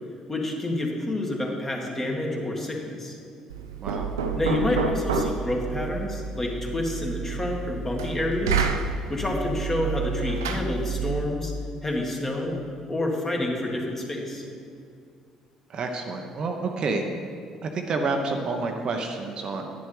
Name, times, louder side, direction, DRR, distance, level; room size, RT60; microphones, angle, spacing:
voice 1, 0.3-3.2 4.4-8.7 9.1-11.5 11.8-12.5 12.9-14.4, left 1 dB, 20° left, -1 dB, 1.8 m, -28 dB
Knock, 3.5-11.4, right 5 dB, 75° right, 0.5 m, -29 dB
voice 2, 3.8-4.1 9.3-9.4 15.7-17.1 17.6-19.7, right 3 dB, 45° right, 3 dB, 0.8 m, -29 dB
10.5 x 9.7 x 3.3 m, 2.3 s
figure-of-eight pair, 50°, 2 cm